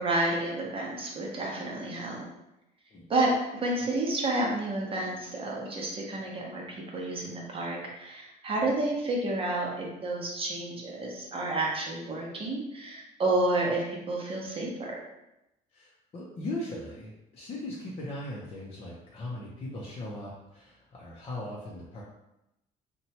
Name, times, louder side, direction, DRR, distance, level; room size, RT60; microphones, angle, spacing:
voice 1, 0.0-2.2 3.1-15.0, right 2 dB, 35° right, -2 dB, 0.7 m, -30 dB
voice 2, 15.7-22.0, left 1 dB, 35° left, -5 dB, 0.6 m, -39 dB
2.9 x 2.2 x 2.8 m, 0.89 s
cardioid pair, 110°, 17 cm